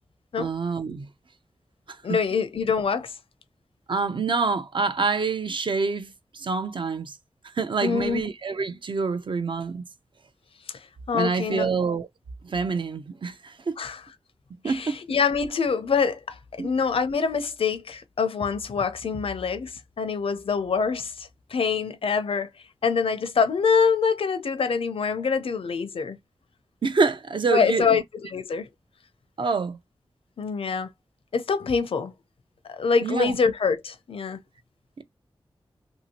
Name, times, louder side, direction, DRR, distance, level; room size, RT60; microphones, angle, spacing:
voice 1, 0.4-1.1 1.9-2.2 3.9-7.2 7.6-9.8 11.1-12.1 12.4-13.8 14.6-15.0 16.6-16.7 26.8-28.0 29.4-29.8 33.0-33.4 35.0-35.1, right 4 dB, 60° right, 0.6 m, -26 dB
voice 2, 2.0-3.1 7.8-8.2 11.1-11.7 13.8-14.0 14.6-22.5 22.8-26.2 27.5-28.7 30.4-30.9 31.3-32.1 32.7-34.4, left 5 dB, 85° left, 0.6 m, -25 dB
3.0 x 2.7 x 2.8 m
wide cardioid pair, 90°, 9 cm